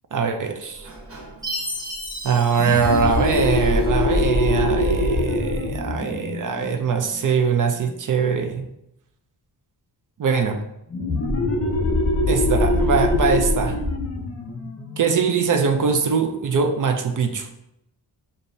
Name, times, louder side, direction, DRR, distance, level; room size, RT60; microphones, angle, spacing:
voice 1, 0.1-0.9 2.2-8.6 10.2-10.6 12.3-13.8 15.0-17.5, right 5 dB, 50° right, 5 dB, 0.5 m, -22 dB
Sliding door, 0.6-6.3, right 1 dB, 35° right, 0.9 m, -42 dB
Chime, 1.4-3.9, equal, 10° right, 1.3 m, -33 dB
sound 1, 2.6-7.9 10.9-16.2, left 1 dB, 35° left, 0.8 m, -23 dB
6.9 x 2.6 x 2.7 m, 0.81 s
wide cardioid pair, 150°, 41 cm